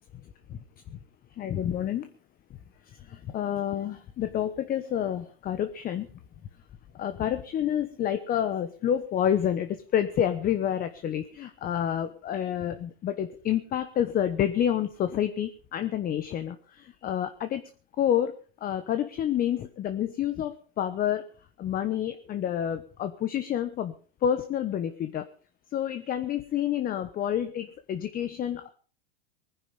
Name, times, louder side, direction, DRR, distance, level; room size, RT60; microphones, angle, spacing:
voice 1, 1.4-2.1 3.1-6.1 6.9-17.6 18.0-18.3 18.6-21.2 21.6-23.9 24.2-25.3 25.7-28.7, left 10 dB, 30° left, 9 dB, 1.1 m, -28 dB
20.0 x 10.5 x 5.4 m, 0.40 s
hypercardioid pair, 120°, 31 cm